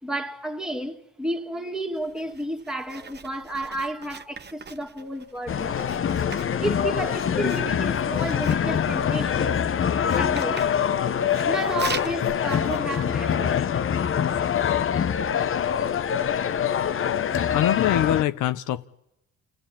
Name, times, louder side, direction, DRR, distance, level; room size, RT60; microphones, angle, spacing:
voice 1, 0.0-6.0 6.6-9.6 10.2-10.7 11.4-13.6, right 1 dB, ahead, 2.3 m, -32 dB
Writing, 1.9-13.6, right 5 dB, 35° right, 1.2 m, -42 dB
sound 1, 5.5-18.2, left 8 dB, 45° left, 0.9 m, -24 dB
voice 2, 17.5-18.8, left 12 dB, 85° left, 0.8 m, -23 dB
28.5 x 17.0 x 8.7 m
cardioid pair, 90°, 30 cm